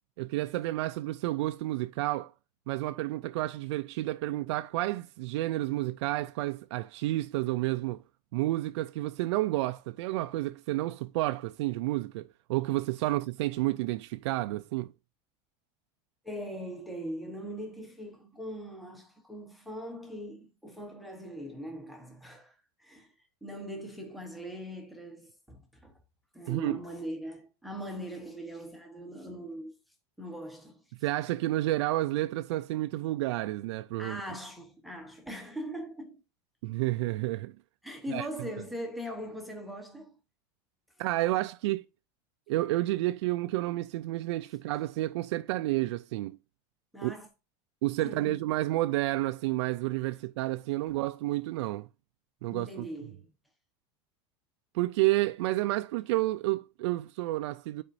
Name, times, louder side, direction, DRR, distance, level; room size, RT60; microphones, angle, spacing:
voice 1, 0.2-2.3 2.7-8.0 8.3-14.9 26.5-26.8 31.0-34.2 36.6-37.5 38.1-38.3 41.0-41.8 42.5-46.4 47.0-47.1 47.8-51.9 52.4-52.9 54.7-57.8, right 17 dB, 85° right, 0.4 m, -30 dB
voice 2, 16.2-23.1 23.4-26.0 26.3-29.8 30.2-30.8 34.0-36.2 37.8-40.2 46.9-47.3 48.0-48.4 50.9-51.0 52.5-53.3, equal, ahead, 0.9 m, -41 dB
9.8 x 4.2 x 2.6 m
supercardioid pair, 165°, 14 cm